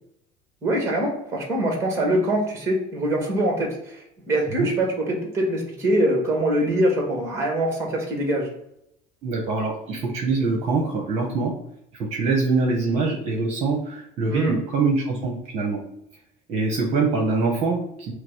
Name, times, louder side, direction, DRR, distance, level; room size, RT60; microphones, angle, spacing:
voice 1, 0.6-8.5 14.3-14.6, right 1 dB, 15° right, 1 dB, 1.3 m, -23 dB
voice 2, 9.2-11.5 11.9-15.8 16.5-18.1, right 3 dB, 40° right, 0 dB, 1.0 m, -24 dB
5.8 x 2.1 x 4.5 m, 0.79 s
cardioid pair, 155°, 16 cm